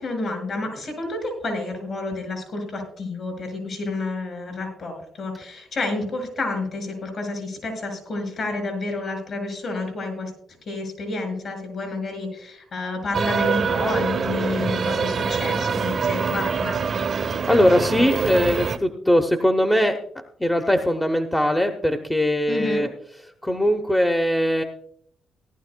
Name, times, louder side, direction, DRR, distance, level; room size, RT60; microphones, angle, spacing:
voice 1, 0.0-10.3 10.7-16.8 22.5-22.9, left 2 dB, 55° left, 4 dB, 5.2 m, -29 dB
sound 1, 13.1-18.8, right 5 dB, 50° right, 0.8 m, -24 dB
voice 2, 17.5-20.0 20.4-22.9 23.4-24.6, equal, 10° left, 5 dB, 0.8 m, -20 dB
18.0 x 11.5 x 2.2 m, 0.65 s
cardioid pair, 90°, 0 cm